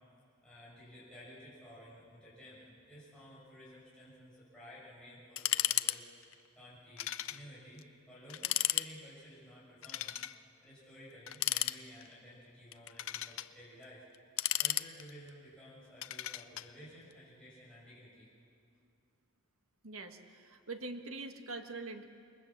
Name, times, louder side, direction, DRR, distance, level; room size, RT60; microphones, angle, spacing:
voice 1, 0.4-14.0 14.6-18.3, equal, 5° left, -9 dB, 6.8 m, -54 dB
sound 1, 5.4-6.0 6.2-6.3 7.0-7.4 7.8-7.9 8.3-8.9 9.8-10.4 11.3-12.1 12.7-13.5 14.1-15.3 16.0-16.7, left 14 dB, 65° left, 0.6 m, -34 dB
voice 2, 19.8-22.0, right 3 dB, 75° right, 5 dB, 1.7 m, -43 dB
27.5 x 21.5 x 7.3 m, 2.4 s
head